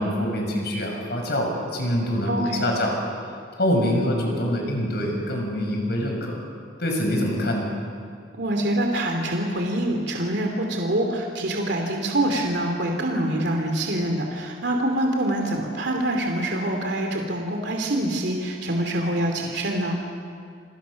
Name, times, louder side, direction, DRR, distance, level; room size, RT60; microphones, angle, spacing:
voice 1, 0.0-3.0 3.6-6.4 6.8-7.7, left 1 dB, 60° left, 1 dB, 6.4 m, -25 dB
voice 2, 2.3-2.7 8.3-20.0, right 1 dB, 65° right, 2 dB, 2.9 m, -25 dB
30.0 x 24.5 x 6.5 m, 2.2 s
head